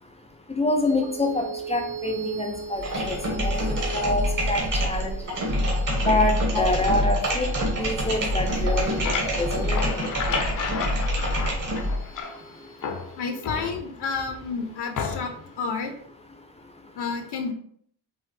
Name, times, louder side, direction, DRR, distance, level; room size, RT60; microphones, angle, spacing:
voice 1, 0.5-2.8 3.1-3.5 3.9-5.1 6.1-7.5 7.8-9.0 9.4-9.9, left 2 dB, 15° left, 3 dB, 0.5 m, -26 dB
sound 1, 0.8-15.6, right 5 dB, 70° right, 1.9 m, -41 dB
sound 2, 2.7-12.1, equal, 50° right, 1.5 m, -26 dB
voice 2, 7.0-7.4 13.2-15.3 15.6-15.9 16.9-17.5, left 5 dB, 75° left, 4 dB, 0.9 m, -30 dB
sound 3, 8.6-12.5 12.8-14.2 14.9-15.5, left 5 dB, 55° left, 0.7 m, -32 dB
5.4 x 3.0 x 3.3 m, 0.62 s
wide cardioid pair, 165°, 40 cm